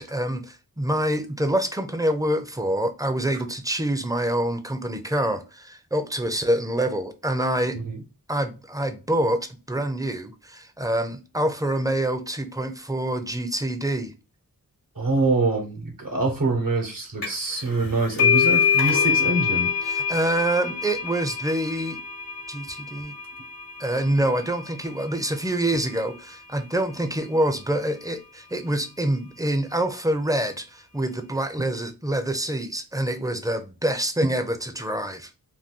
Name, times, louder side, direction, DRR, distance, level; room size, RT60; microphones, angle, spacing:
voice 1, 0.0-7.8 8.3-14.1 19.9-22.0 22.5-23.2 23.8-35.3, right 1 dB, 10° right, 0.5 m, -26 dB
voice 2, 15.0-19.7, right 3 dB, 65° right, 1.1 m, -25 dB
sound 1, 17.2-17.5 17.8-25.1, left 7 dB, 75° left, 0.9 m, -25 dB
2.6 x 2.2 x 3.6 m
wide cardioid pair, 40°, 36 cm